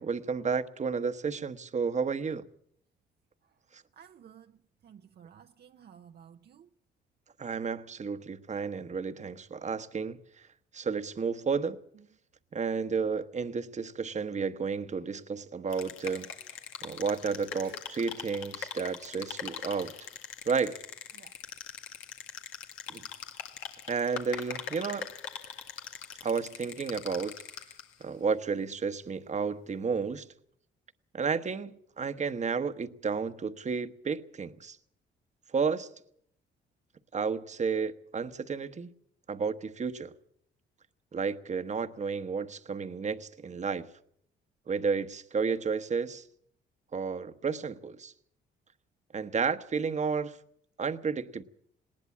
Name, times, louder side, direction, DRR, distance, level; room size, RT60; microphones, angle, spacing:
voice 1, 0.0-2.4 3.7-3.8 7.4-10.2 10.7-11.8 12.5-16.3 16.8-19.9 20.5-20.8 22.9-23.0 23.9-25.1 26.2-27.3 28.0-30.3 31.1-34.8 35.5-35.9 37.1-38.9 39.3-40.1 41.1-43.9 44.7-46.2 46.9-48.1 49.1-50.4 50.8-51.4, right 5 dB, 35° right, 1.1 m, -32 dB
voice 2, 4.0-6.7 16.0-16.2 17.6-17.8 19.6-20.2 21.1-21.3 23.1-23.3, right 8 dB, 55° right, 0.7 m, -55 dB
sound 1, 15.7-28.0, left 8 dB, 90° left, 1.9 m, -42 dB
19.5 x 18.5 x 7.3 m
cardioid pair, 90°, 20 cm